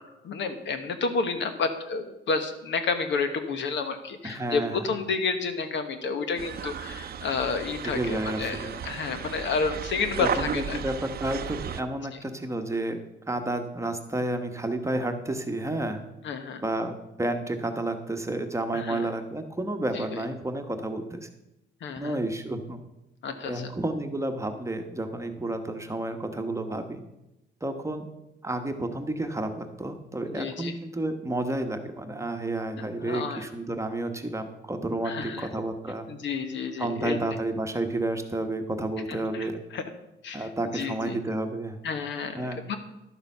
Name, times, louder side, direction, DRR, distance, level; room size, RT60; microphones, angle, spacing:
voice 1, 0.2-10.8 16.2-16.6 18.7-19.0 19.9-20.0 21.8-22.2 23.2-23.7 30.2-30.7 33.0-33.4 35.0-35.5 36.1-37.2 39.1-39.5 39.7-39.8 40.2-40.5 40.7-41.2 41.8-42.8, left 4 dB, 70° left, 8 dB, 1.2 m, -30 dB
voice 2, 4.2-4.9 7.8-8.8 10.2-13.0 13.3-16.0 16.6-21.3 22.0-22.8 23.4-27.0 27.6-28.1 28.4-36.1 36.8-39.6 40.3-41.8 42.4-42.7, right 2 dB, 15° right, 6 dB, 1.1 m, -31 dB
sound 1, 6.4-11.8, right 8 dB, 50° right, 0.6 m, -35 dB
11.5 x 7.0 x 5.4 m, 0.92 s
cardioid pair, 90°, 20 cm